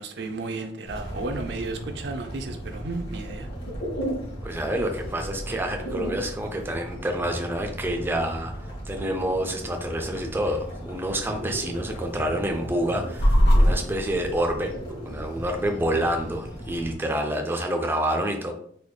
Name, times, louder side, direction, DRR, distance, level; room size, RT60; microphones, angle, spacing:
voice 1, 0.0-3.5, right 3 dB, 70° right, 5 dB, 0.5 m, -33 dB
sound 1, 0.8-16.9, equal, 65° left, 1.5 m, -29 dB
voice 2, 4.4-14.7 15.1-18.5, right 1 dB, 15° right, 3 dB, 0.3 m, -28 dB
4.0 x 2.0 x 3.2 m, 0.62 s
head